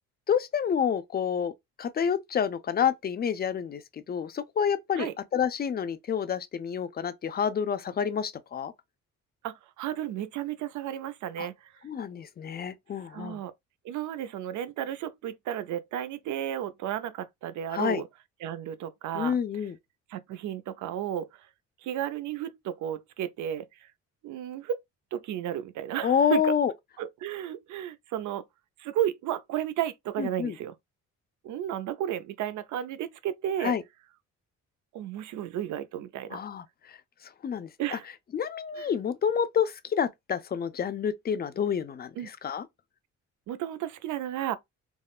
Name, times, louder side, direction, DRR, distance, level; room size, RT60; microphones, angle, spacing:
voice 1, 0.3-1.5 1.8-8.7 11.4-11.5 11.8-13.4 17.7-18.0 19.1-19.8 26.0-26.7 30.2-30.6 33.6-33.8 36.3-37.0 37.2-38.0 38.3-42.7, left 7 dB, 35° left, 0.4 m, -28 dB
voice 2, 9.4-11.7 13.1-13.5 13.8-18.1 18.4-19.4 20.1-21.3 21.8-23.6 24.2-24.8 25.1-26.5 27.0-28.4 28.8-30.7 31.4-33.7 34.9-36.4 37.8-38.1 38.8-38.9 42.2-42.3 43.5-44.6, right 11 dB, 75° right, 0.5 m, -33 dB
3.6 x 2.0 x 2.3 m
cardioid pair, 90°, 30 cm